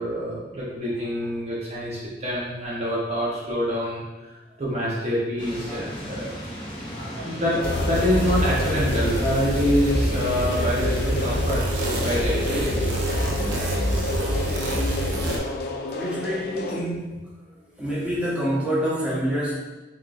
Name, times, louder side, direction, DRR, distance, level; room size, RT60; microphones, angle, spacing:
voice 1, 0.0-6.4 7.2-13.7, equal, 35° right, -6 dB, 0.8 m, -26 dB
sound 1, 5.4-11.4, equal, 30° left, 1.1 m, -35 dB
sound 2, 7.5-16.8, left 3 dB, 60° left, 0.4 m, -31 dB
sound 3, 7.6-15.4, equal, 75° right, 0.6 m, -26 dB
voice 2, 15.9-17.3 17.8-19.5, equal, 5° right, -8 dB, 1.0 m, -26 dB
3.7 x 3.6 x 2.5 m, 1.1 s
head